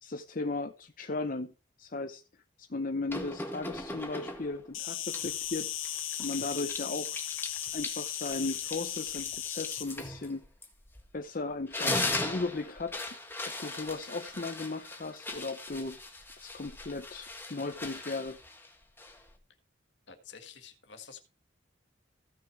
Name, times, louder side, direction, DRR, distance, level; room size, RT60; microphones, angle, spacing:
voice 1, 0.0-2.2 2.6-5.7 6.2-7.2 7.7-10.4 11.1-13.1 13.5-16.0 16.4-18.4, left 3 dB, 45° left, 0.7 m, -36 dB
sound 1, 3.1-4.6 5.1-11.2 11.5-19.4, left 2 dB, 10° left, 1.7 m, -39 dB
Insect, 4.7-9.8, left 12 dB, 80° left, 1.0 m, -36 dB
voice 2, 20.1-21.2, left 7 dB, 65° left, 1.9 m, -49 dB
15.0 x 6.3 x 4.7 m
head